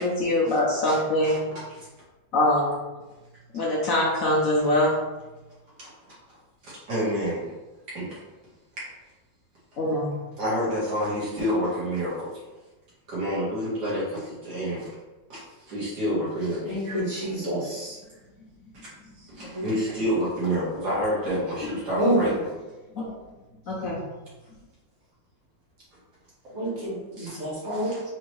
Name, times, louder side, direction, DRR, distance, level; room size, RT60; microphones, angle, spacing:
voice 1, 0.0-1.4 2.3-2.8 3.5-4.9 9.8-10.1 22.3-22.4 22.9-23.0 23.7-24.0, left 1 dB, 60° left, 1.0 m, -23 dB
voice 2, 6.6-7.5 7.9-8.2 8.8-8.9 10.4-12.4 13.1-14.9 15.3-16.9 19.2-22.5 27.2-27.4 27.7-28.0, equal, 65° right, 2.1 m, -29 dB
voice 3, 16.6-18.0 19.5-19.7 22.0-22.2 26.5-27.9, equal, 40° right, 1.8 m, -28 dB
4.3 x 2.9 x 3.1 m
omnidirectional pair, 1.9 m